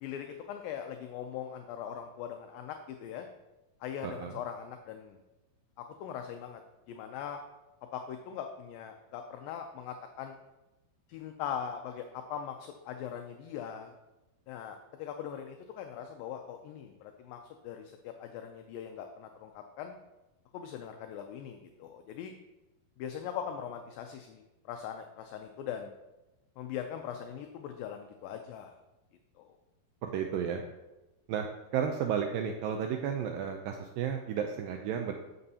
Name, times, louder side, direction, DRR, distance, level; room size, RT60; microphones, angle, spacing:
voice 1, 0.0-3.3 3.8-5.2 5.8-6.6 6.9-7.4 7.9-10.4 11.1-13.9 14.5-19.9 20.5-22.3 23.0-25.9 26.6-28.8 29.4-29.5, left 8 dB, 80° left, 5 dB, 2.1 m, -41 dB
voice 2, 30.0-30.6 31.3-31.5 31.7-35.1, right 8 dB, 85° right, 4 dB, 2.0 m, -32 dB
12.0 x 6.8 x 2.8 m, 1.0 s
omnidirectional pair, 4.5 m